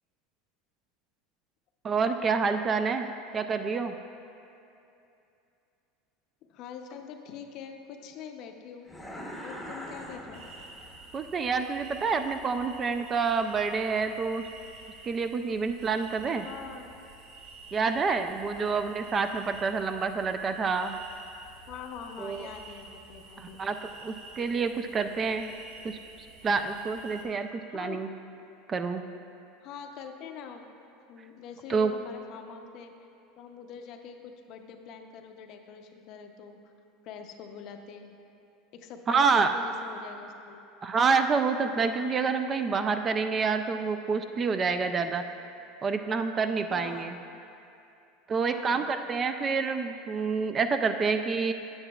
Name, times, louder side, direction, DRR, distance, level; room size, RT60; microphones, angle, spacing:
voice 1, 1.8-3.1 3.3-3.9 11.1-14.4 15.1-16.5 17.7-21.0 22.2-22.5 23.4-25.5 25.8-26.0 26.4-28.1 28.7-29.0 31.7-31.9 39.1-39.6 40.8-45.2 45.8-47.2 48.3-51.5, right 5 dB, 30° right, 8 dB, 0.4 m, -28 dB
voice 2, 6.5-8.9 9.4-10.4 16.4-16.9 18.5-18.7 21.7-23.6 27.7-28.0 29.6-30.7 31.1-32.9 33.4-36.6 37.0-38.2 38.7-40.7 46.7-47.1 48.5-48.9, left 6 dB, 55° left, 5 dB, 0.6 m, -44 dB
sound 1, 8.9-11.2, equal, ahead, 0.9 m, -42 dB
sound 2, 10.3-27.3, right 3 dB, 60° right, 1.1 m, -49 dB
9.2 x 7.8 x 2.3 m, 2.7 s
supercardioid pair, 110°, 0 cm